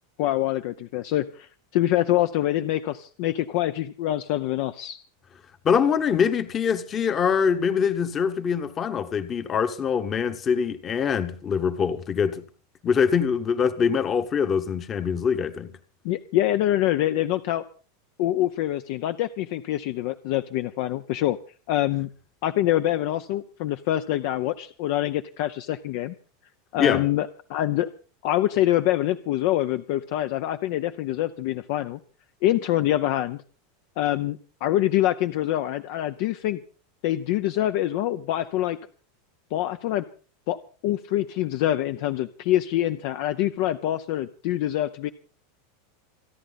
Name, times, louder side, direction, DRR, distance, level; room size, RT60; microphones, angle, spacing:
voice 1, 0.2-5.0 16.0-17.6 18.2-21.4 21.7-22.1 22.4-26.1 26.7-27.9 28.2-32.0 32.4-33.4 34.0-36.6 37.0-38.8 39.5-40.0 40.5-40.6 40.8-45.1, left 13 dB, 50° left, 0.7 m, -25 dB
voice 2, 5.6-12.4 12.8-15.7 26.8-27.1, left 7 dB, 20° left, 1.1 m, -24 dB
28.0 x 10.5 x 4.1 m
supercardioid pair, 160°, 0 cm